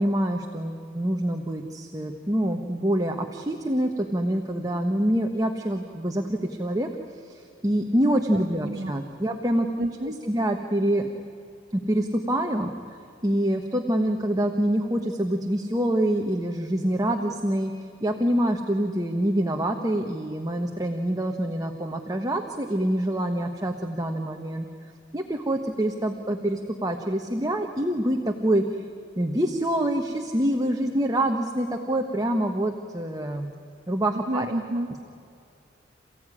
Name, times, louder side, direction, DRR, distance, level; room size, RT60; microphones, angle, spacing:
voice 1, 0.0-6.9 7.2-9.7 10.3-11.1 11.7-12.7 13.2-17.7 18.0-24.7 25.1-28.6 29.2-33.5 33.9-34.5, right 1 dB, 20° right, 3 dB, 1.3 m, -26 dB
voice 2, 8.3-8.9 9.8-10.1 34.1-34.9, right 1 dB, 50° right, 4 dB, 1.1 m, -30 dB
28.5 x 16.5 x 10.0 m, 2.6 s
head